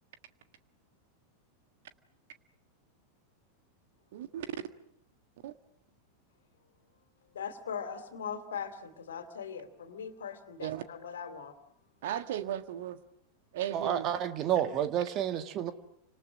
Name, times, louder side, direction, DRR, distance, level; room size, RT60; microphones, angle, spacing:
voice 1, 4.1-4.4 5.4-5.5 10.6-10.8 12.0-13.0 13.5-14.1, right 11 dB, 55° right, 11 dB, 1.6 m, -36 dB
voice 2, 7.3-11.5, left 7 dB, 65° left, 10 dB, 2.8 m, -40 dB
voice 3, 13.7-15.7, right 10 dB, 35° right, 10 dB, 1.8 m, -30 dB
30.0 x 26.5 x 6.3 m, 0.76 s
figure-of-eight pair, 90°, 0 cm